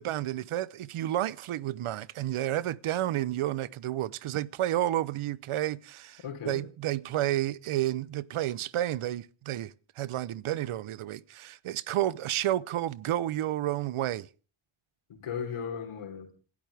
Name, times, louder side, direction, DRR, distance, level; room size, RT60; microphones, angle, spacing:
voice 1, 0.0-14.3, right 13 dB, 80° right, 0.8 m, -31 dB
voice 2, 6.2-6.6 15.1-16.3, left 7 dB, 80° left, 3.8 m, -36 dB
27.5 x 12.5 x 3.4 m
cardioid pair, 60°, 50 cm